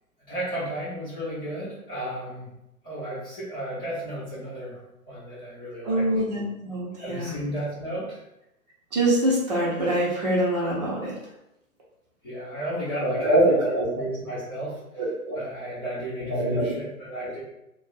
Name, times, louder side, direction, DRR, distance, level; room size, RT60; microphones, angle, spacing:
voice 1, 0.3-2.5 2.8-6.1 7.0-8.2 12.2-14.8 15.3-17.4, right 1 dB, 15° left, -10 dB, 0.6 m, -34 dB
voice 2, 5.8-7.3 8.9-11.1 13.0-14.0 15.0-15.4 16.2-16.7, right 1 dB, 30° right, -5 dB, 0.8 m, -24 dB
2.5 x 2.2 x 4.0 m, 0.88 s
figure-of-eight pair, 130°, 43 cm